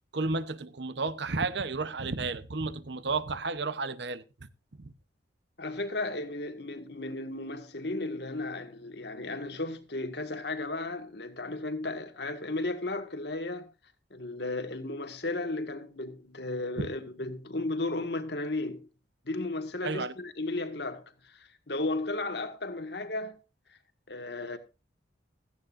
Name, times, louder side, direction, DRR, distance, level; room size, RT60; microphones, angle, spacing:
voice 1, 0.1-4.2 4.8-4.9 16.8-16.9 19.8-20.1, right 3 dB, 65° right, 0.9 m, -32 dB
voice 2, 5.6-13.7 14.1-18.9 19.3-23.4 24.1-24.6, left 2 dB, 60° left, 1.8 m, -34 dB
16.0 x 14.5 x 2.6 m
head